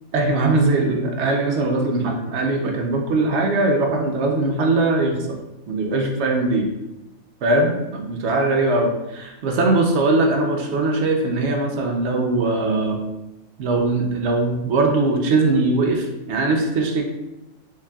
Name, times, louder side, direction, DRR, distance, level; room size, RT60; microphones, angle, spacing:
voice 1, 0.1-5.1 5.7-6.7 7.4-13.0 13.6-17.0, right 2 dB, 65° right, 2 dB, 0.8 m, -20 dB
3.7 x 3.2 x 2.3 m, 0.95 s
omnidirectional pair, 1.5 m